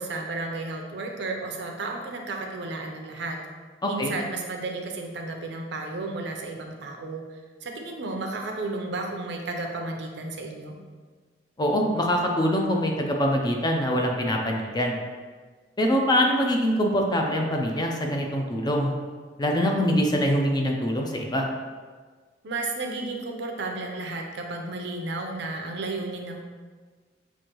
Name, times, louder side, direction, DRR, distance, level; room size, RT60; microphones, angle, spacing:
voice 1, 0.0-3.4 3.9-10.8 22.4-26.4, right 2 dB, 70° right, 2 dB, 0.6 m, -33 dB
voice 2, 3.8-4.1 11.6-15.0 15.8-18.9 19.4-21.5, equal, 25° left, 1 dB, 0.5 m, -24 dB
6.2 x 2.6 x 3.0 m, 1.5 s
head